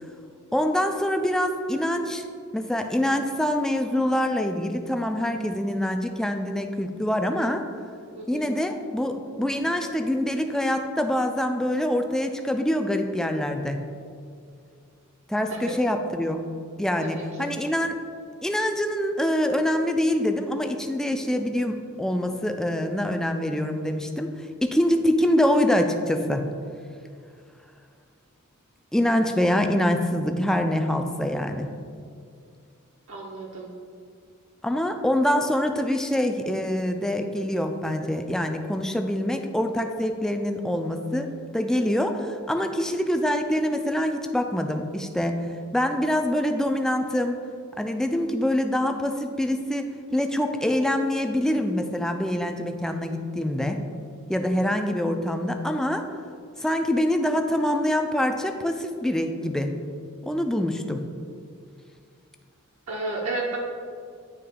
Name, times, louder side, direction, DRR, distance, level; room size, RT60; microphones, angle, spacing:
voice 1, 0.5-2.2 2.5-7.7 8.3-13.9 15.3-16.4 16.8-18.0 18.4-24.3 24.6-26.5 28.9-31.7 34.6-41.3 41.5-45.4 45.7-47.4 47.8-53.8 54.3-56.1 56.6-59.8 60.2-61.1, left 1 dB, 5° left, 5 dB, 0.3 m, -25 dB
voice 2, 8.1-8.5 15.5-15.8 17.0-17.5 33.1-33.7 62.9-63.6, right 2 dB, 65° right, -2 dB, 0.7 m, -32 dB
9.4 x 3.3 x 3.7 m, 2.3 s
head